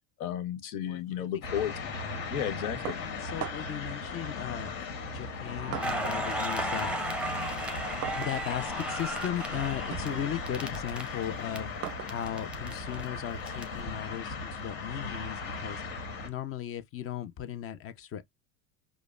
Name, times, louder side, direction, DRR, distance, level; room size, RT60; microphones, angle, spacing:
voice 1, 0.2-1.9 2.3-3.0, left 10 dB, 85° left, 1.0 m, -33 dB
voice 2, 0.9-1.7 3.0-4.7 5.1-7.3 8.1-11.7 12.1-15.8 16.2-18.2, left 10 dB, 35° left, 0.5 m, -37 dB
sound 1, 1.4-16.3, left 4 dB, 60° left, 1.6 m, -37 dB
sound 2, 2.9-3.9 4.8-6.3 6.6-13.9, right 12 dB, 40° right, 0.5 m, -44 dB
Crackle, 5.7-11.6 11.9-13.6, right 2 dB, 5° right, 0.7 m, -35 dB
4.9 x 2.1 x 2.4 m
supercardioid pair, 120°, 40 cm